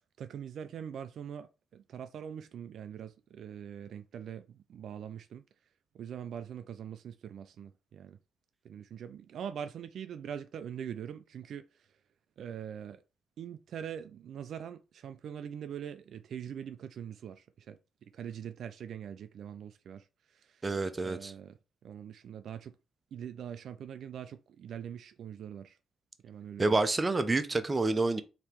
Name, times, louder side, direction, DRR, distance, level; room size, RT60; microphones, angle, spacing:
voice 1, 0.2-5.4 5.9-8.2 8.6-11.9 12.4-13.0 13.4-20.6 21.0-21.6 21.8-22.8 23.1-25.8 26.2-26.8, right 8 dB, 65° right, 0.3 m, -43 dB
voice 2, 20.6-21.3 26.6-28.2, right 3 dB, 25° right, 0.6 m, -28 dB
3.4 x 2.9 x 4.5 m
cardioid pair, 90°, 0 cm